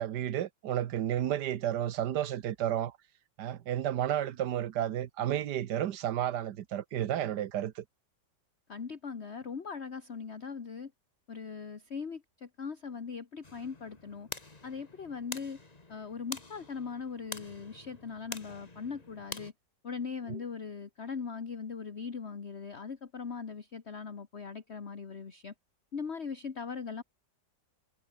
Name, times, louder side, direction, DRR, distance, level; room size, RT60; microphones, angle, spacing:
voice 1, 0.0-2.9 3.4-7.8 20.3-20.4, right 11 dB, 70° right, 1.5 m, -32 dB
voice 2, 8.7-10.9 11.3-14.3 14.6-15.6 15.9-19.5 19.8-25.5 25.9-27.0, left 5 dB, 40° left, 1.7 m, -40 dB
sound 1, 13.4-19.5, left 3 dB, 25° left, 1.9 m, -46 dB
omnidirectional pair, 1.9 m